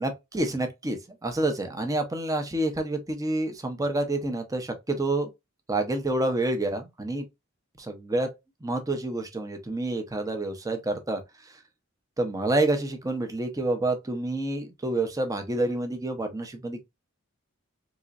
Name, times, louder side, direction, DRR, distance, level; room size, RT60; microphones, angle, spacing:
voice 1, 0.0-5.3 5.7-7.3 7.8-8.3 8.6-11.6 12.2-16.8, right 2 dB, 15° right, 0.7 m, -28 dB
3.9 x 3.0 x 2.4 m
head